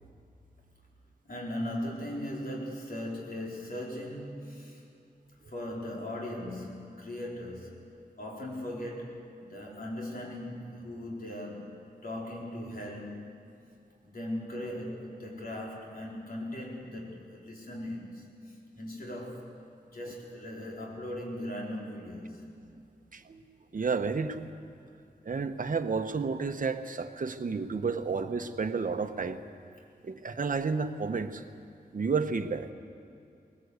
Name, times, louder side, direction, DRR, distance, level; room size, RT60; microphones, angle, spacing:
voice 1, 1.3-4.8 5.5-11.8 12.0-13.2 14.0-19.5 19.9-22.4, left 1 dB, 60° left, -2 dB, 4.4 m, -39 dB
voice 2, 23.1-23.4 23.7-24.5 25.3-29.4 30.0-31.4 31.9-32.7, right 4 dB, 55° right, 7 dB, 1.1 m, -31 dB
19.5 x 19.5 x 8.2 m, 2.5 s
wide cardioid pair, 110°, 17 cm